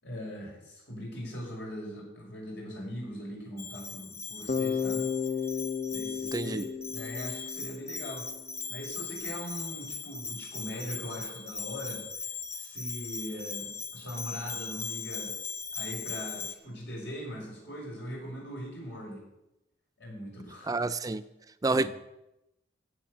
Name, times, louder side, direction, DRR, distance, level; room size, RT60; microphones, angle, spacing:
voice 1, 0.0-5.1 5.9-8.3 8.7-12.1 12.5-15.3 15.7-19.2 20.0-20.9 21.7-21.9, equal, 70° left, 6.1 m, -40 dB
Bell, 3.6-16.5, left 5 dB, 15° left, 0.7 m, -39 dB
Bass guitar, 4.5-8.4, left 6 dB, 45° left, 0.8 m, -33 dB
voice 2, 6.3-6.7 20.7-21.2 21.6-21.9, right 3 dB, 20° right, 0.4 m, -28 dB
16.0 x 7.5 x 6.7 m
head